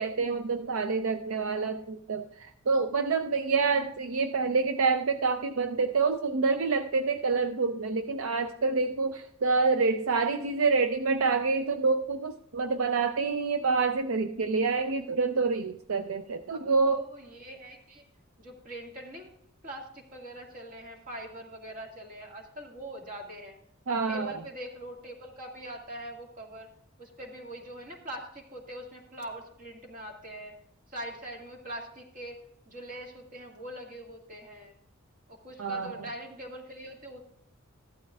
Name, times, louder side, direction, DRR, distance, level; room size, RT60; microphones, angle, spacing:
voice 1, 0.0-17.0 23.9-24.4 35.6-35.9, right 4 dB, 70° right, 7 dB, 0.5 m, -27 dB
voice 2, 16.5-18.0 18.4-19.3 19.6-23.6 23.9-26.7 27.0-30.5 30.9-32.4 32.7-34.8 35.3-37.2, right 1 dB, 40° right, 1 dB, 1.9 m, -42 dB
14.5 x 12.0 x 2.4 m, 0.72 s
head